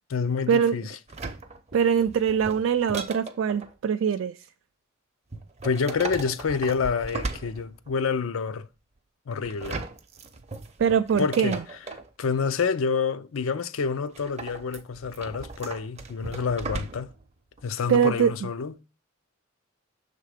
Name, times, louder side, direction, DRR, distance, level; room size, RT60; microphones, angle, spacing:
voice 1, 0.1-1.0 5.6-8.7 9.3-9.8 11.2-11.6 12.2-17.1 17.6-18.8, left 5 dB, 75° left, 0.5 m, -28 dB
sound 1, 1.1-3.7 5.3-8.1 9.4-12.1 14.1-17.2 17.6-17.7, right 3 dB, 30° right, 0.6 m, -37 dB
voice 2, 1.7-4.4 10.8-11.6 17.9-18.3, right 7 dB, 65° right, 0.3 m, -23 dB
6.5 x 3.7 x 4.9 m
head